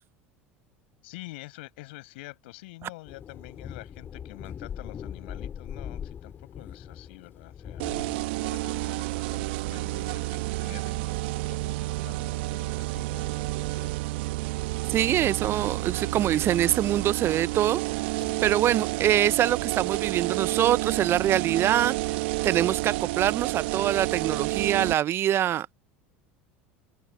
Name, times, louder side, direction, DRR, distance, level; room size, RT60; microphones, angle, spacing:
voice 1, 1.0-7.9 8.2-14.1, left 21 dB, 70° left, 6.5 m, -47 dB
sound 1, 3.1-19.5, left 8 dB, 35° left, 6.2 m, -44 dB
sound 2, 7.8-24.9, right 22 dB, 70° right, 2.1 m, -30 dB
voice 2, 14.9-17.8 18.4-22.2 22.4-25.7, right 11 dB, 45° right, 0.9 m, -24 dB
hypercardioid pair, 80°, 6 cm